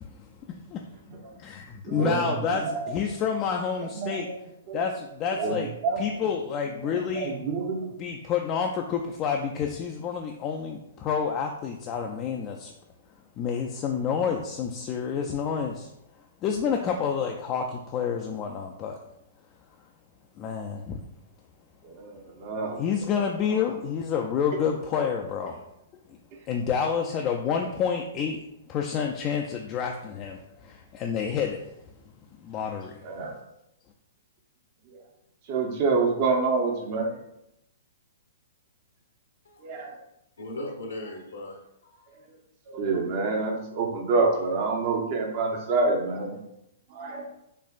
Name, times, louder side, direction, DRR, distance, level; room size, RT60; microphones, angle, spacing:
voice 1, 0.0-0.9 1.5-1.6 1.9-4.3 4.7-5.7 6.0-7.4 8.0-12.7 13.4-19.0 20.4-21.0 22.8-25.7 26.1-26.2 26.5-31.8 32.0-33.0, left 6 dB, 30° left, 2 dB, 0.3 m, -29 dB
voice 2, 1.9-2.9 3.9-4.3 4.7-4.8 5.3-6.2 6.8-8.0 21.8-22.8 33.0-33.3 34.9-35.0 35.5-37.2 39.6-40.0 42.7-46.4 46.9-47.3, right 3 dB, 45° right, 2 dB, 0.7 m, -27 dB
voice 3, 40.4-42.2 47.1-47.3, left 1 dB, 85° left, 0 dB, 1.0 m, -39 dB
4.3 x 2.5 x 2.4 m, 0.82 s
hypercardioid pair, 130°, 0 cm